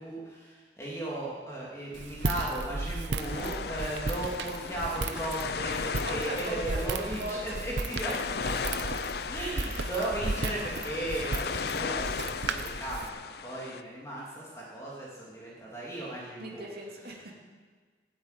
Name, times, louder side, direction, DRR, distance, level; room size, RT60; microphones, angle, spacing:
voice 1, 0.0-8.1 8.6-8.7 9.3-13.1 13.4-16.6, right 1 dB, 15° left, -5 dB, 2.7 m, -36 dB
Walk footsteps, 1.9-13.1, right 3 dB, 75° right, 0.8 m, -35 dB
sound 1, 3.2-13.8, left 5 dB, 55° left, 0.5 m, -36 dB
voice 2, 6.0-7.6 8.1-8.2 16.4-17.4, right 1 dB, 55° right, -2 dB, 2.8 m, -39 dB
16.0 x 8.6 x 9.2 m, 1.5 s
head